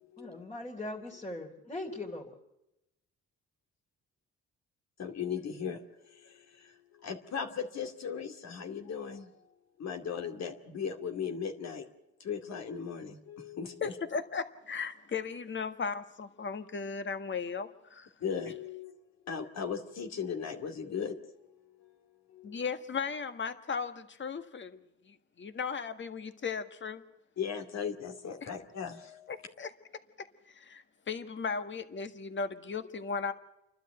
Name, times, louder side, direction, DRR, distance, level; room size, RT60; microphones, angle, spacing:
voice 1, 0.2-2.3, left 2 dB, 20° left, 3.2 m, -40 dB
voice 2, 5.0-5.8 6.2-6.3 7.0-9.3 9.8-11.9 12.2-13.9 18.2-18.9 19.3-21.2 22.3-22.6 27.4-29.4, left 7 dB, 60° left, 2.5 m, -37 dB
voice 3, 13.8-18.1 22.4-27.0 29.3-29.7 30.2-33.3, left 5 dB, 40° left, 1.7 m, -36 dB
29.5 x 12.0 x 8.0 m
cardioid pair, 90°, 30 cm